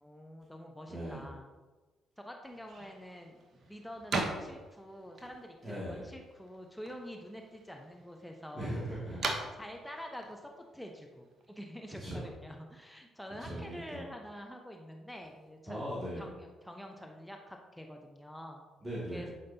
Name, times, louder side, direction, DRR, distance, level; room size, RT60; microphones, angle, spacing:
voice 1, 0.0-1.5 2.2-3.4 3.7-9.0 9.6-15.8 16.2-18.7 19.1-19.3, equal, 5° left, 2 dB, 0.9 m, -47 dB
voice 2, 0.9-1.3 5.6-6.0 8.5-9.5 12.0-12.3 13.4-14.0 15.7-16.3 18.8-19.3, equal, 25° right, -8 dB, 2.6 m, -39 dB
sound 1, 2.4-11.6, right 3 dB, 55° right, 1.1 m, -42 dB
11.5 x 5.1 x 2.9 m, 1.3 s
hypercardioid pair, 45°, 0 cm